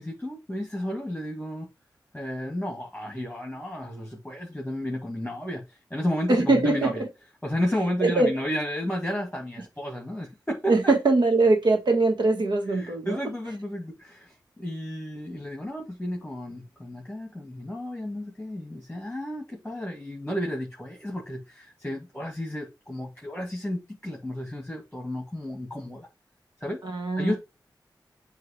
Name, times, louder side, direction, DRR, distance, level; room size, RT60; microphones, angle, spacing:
voice 1, 0.0-1.7 2.1-7.0 7.4-10.9 12.7-26.1 26.6-26.8 27.2-27.3, equal, 5° left, 2.0 m, -32 dB
voice 2, 6.3-7.1 8.0-8.3 10.7-13.2 26.8-27.3, right 2 dB, 70° right, 1.5 m, -22 dB
7.6 x 2.8 x 5.2 m
wide cardioid pair, 95°, 8 cm